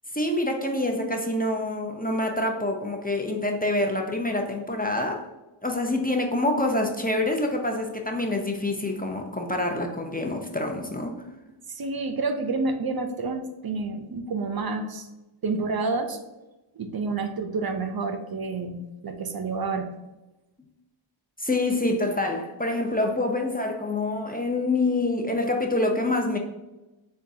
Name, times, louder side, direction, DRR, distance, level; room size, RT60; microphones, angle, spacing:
voice 1, 0.1-5.2 5.6-11.2 21.4-26.4, left 2 dB, 20° left, 2 dB, 0.5 m, -26 dB
voice 2, 11.7-15.1 15.4-16.2 16.8-19.9, right 3 dB, 50° right, 6 dB, 0.6 m, -29 dB
6.9 x 2.3 x 2.7 m, 1.0 s
cardioid pair, 50°, 50 cm